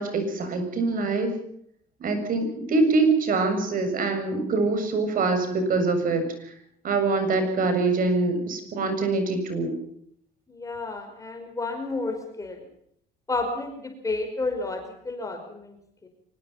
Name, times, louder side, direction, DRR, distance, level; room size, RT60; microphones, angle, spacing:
voice 1, 0.0-1.4 2.0-6.2 6.8-9.7, right 3 dB, 55° right, 8 dB, 7.3 m, -24 dB
voice 2, 10.5-12.7 13.3-16.1, left 3 dB, 20° left, 4 dB, 5.2 m, -31 dB
24.5 x 20.5 x 5.8 m, 0.69 s
cardioid pair, 110°, 17 cm